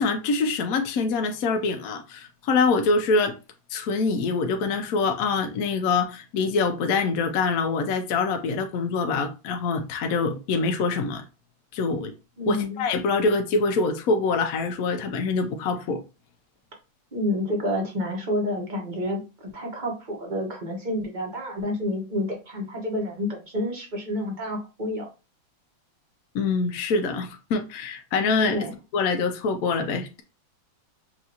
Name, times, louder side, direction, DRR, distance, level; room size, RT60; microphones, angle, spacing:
voice 1, 0.0-3.3 3.7-11.2 11.7-12.1 12.5-16.0 26.3-28.6 28.9-30.2, left 4 dB, 65° left, 0.9 m, -25 dB
voice 2, 12.4-12.8 17.1-25.1 28.5-28.7, left 1 dB, 30° right, 1.1 m, -29 dB
5.8 x 2.6 x 2.8 m
omnidirectional pair, 2.1 m